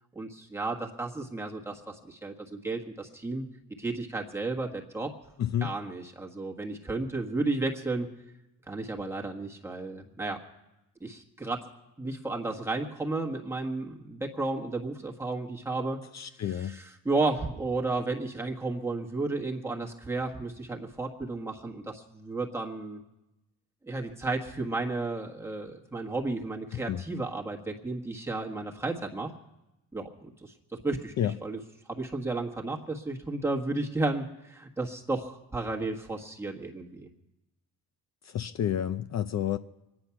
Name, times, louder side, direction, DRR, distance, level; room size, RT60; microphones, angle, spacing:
voice 1, 0.1-3.4 3.8-5.1 5.6-8.1 8.7-10.4 11.0-11.7 12.0-16.0 16.5-23.0 23.8-29.3 29.9-31.1 31.4-31.6 31.9-37.1, right 3 dB, 5° right, 0 dB, 1.4 m, -33 dB
voice 2, 5.4-5.7 16.1-16.8 26.7-27.0 31.2-31.4 38.2-39.6, left 10 dB, 50° left, 10 dB, 0.5 m, -30 dB
24.5 x 9.8 x 5.8 m, 0.95 s
wide cardioid pair, 160°, 34 cm